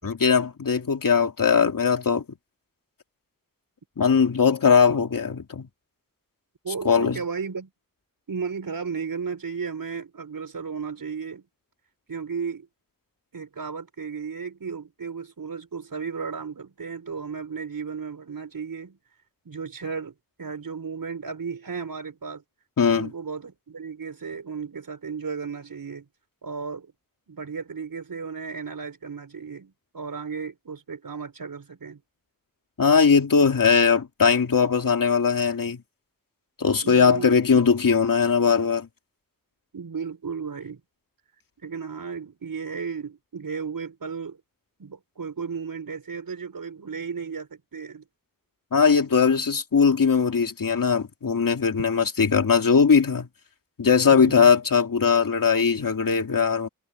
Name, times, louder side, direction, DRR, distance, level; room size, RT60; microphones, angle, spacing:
voice 1, 0.0-2.2 4.0-5.7 6.8-7.2 22.8-23.1 32.8-35.8 36.6-38.9 48.7-53.3 53.8-56.7, left 6 dB, 70° left, 2.7 m, -20 dB
voice 2, 6.6-7.7 8.3-11.5 12.1-12.7 13.3-19.0 19.4-22.4 22.9-26.1 26.4-26.9 27.3-32.0 36.8-37.6 39.7-40.8 41.6-44.4 44.8-48.0 54.1-54.6, right 5 dB, 75° right, 6.2 m, -34 dB
wide cardioid pair, 110°, 34 cm